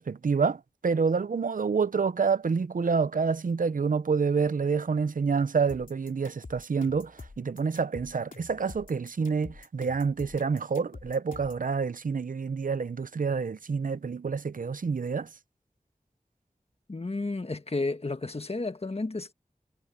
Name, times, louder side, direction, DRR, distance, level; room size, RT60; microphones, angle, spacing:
voice 1, 0.0-15.3, right 5 dB, 80° right, 0.6 m, -28 dB
sound 1, 5.7-11.7, left 3 dB, 80° left, 3.3 m, -47 dB
voice 2, 16.9-19.3, left 3 dB, 45° left, 1.5 m, -32 dB
wide cardioid pair, 50°, 14 cm